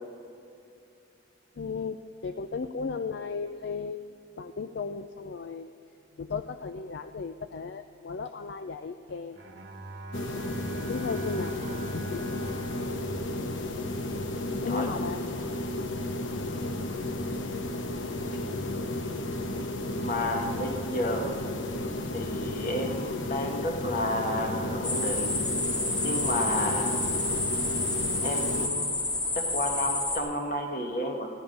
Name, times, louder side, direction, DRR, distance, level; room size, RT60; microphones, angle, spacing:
voice 1, 1.6-4.0 4.4-5.7 6.2-9.4 10.9-11.5 11.9-12.5 14.6-15.2, left 5 dB, 60° left, 7 dB, 0.4 m, -35 dB
Bowed string instrument, 9.3-14.7, right 2 dB, 60° right, 1.1 m, -43 dB
sound 1, 10.1-28.7, left 1 dB, 75° left, 1.0 m, -33 dB
voice 2, 14.6-15.7 20.0-21.4 22.1-25.4 26.0-27.0 28.2-29.0 29.3-31.3, left 1 dB, 45° left, 2 dB, 1.5 m, -31 dB
sound 2, 24.8-30.2, left 2 dB, 20° left, 1.1 m, -29 dB
15.5 x 11.0 x 5.3 m, 2.5 s
head